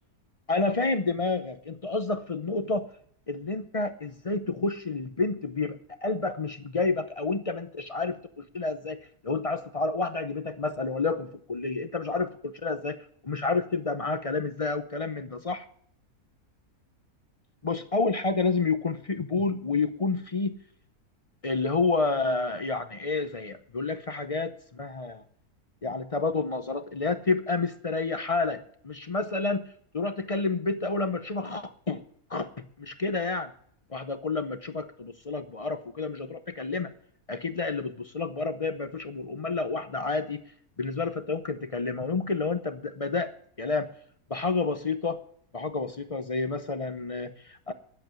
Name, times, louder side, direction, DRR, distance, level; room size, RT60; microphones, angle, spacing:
voice 1, 0.5-2.9 3.3-9.0 9.2-13.0 13.2-15.6 17.6-20.6 21.4-25.2 25.8-29.7 29.9-32.0 32.3-33.5 33.9-36.9 37.3-40.4 40.8-43.9 44.3-45.2 45.5-47.7, left 3 dB, 35° left, 9 dB, 0.5 m, -29 dB
10.5 x 8.1 x 8.8 m, 0.62 s
omnidirectional pair, 1.6 m